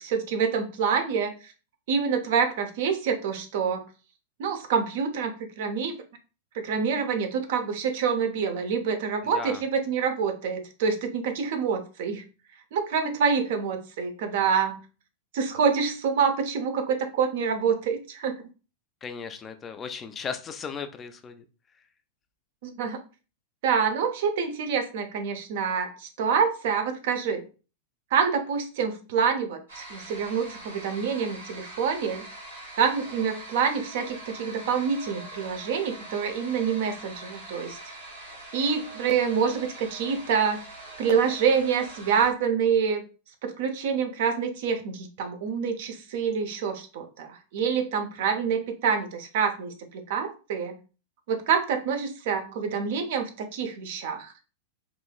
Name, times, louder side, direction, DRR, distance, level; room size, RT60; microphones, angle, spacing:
voice 1, 0.0-1.5 1.9-3.8 4.4-6.0 6.5-12.2 12.7-14.8 15.3-18.4 22.6-23.0 23.6-27.5 28.1-32.2 32.8-37.8 38.5-40.6 41.0-43.0 43.4-50.7 51.3-54.3, right 6 dB, 60° right, 6 dB, 0.6 m, -26 dB
voice 2, 9.2-9.6 19.0-21.4, left 6 dB, 25° left, 8 dB, 0.3 m, -36 dB
sound 1, 29.7-42.3, right 2 dB, 80° right, 1.2 m, -43 dB
3.0 x 2.3 x 2.3 m, 0.34 s
figure-of-eight pair, 100°, 0 cm